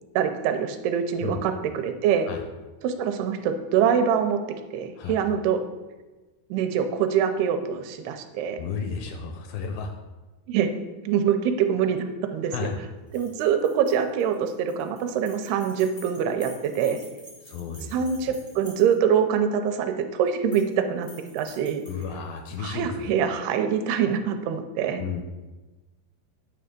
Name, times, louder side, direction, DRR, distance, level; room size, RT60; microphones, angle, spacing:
voice 1, 0.2-2.3 2.8-4.4 4.7-5.6 6.5-8.6 10.5-10.7 11.0-12.0 12.3-12.7 13.1-17.0 17.9-21.1 21.3-21.8 22.6-25.0, right 8 dB, 80° right, 7 dB, 2.6 m, -24 dB
voice 2, 8.6-9.9 12.5-12.8 17.4-17.9 18.2-18.4 21.9-23.1 25.0-25.2, left 6 dB, 80° left, 5 dB, 2.2 m, -33 dB
sound 1, 13.1-19.2 20.3-20.7 21.0-22.5, equal, 40° left, 0.4 m, -49 dB
9.2 x 3.4 x 6.6 m, 1.2 s
omnidirectional pair, 4.6 m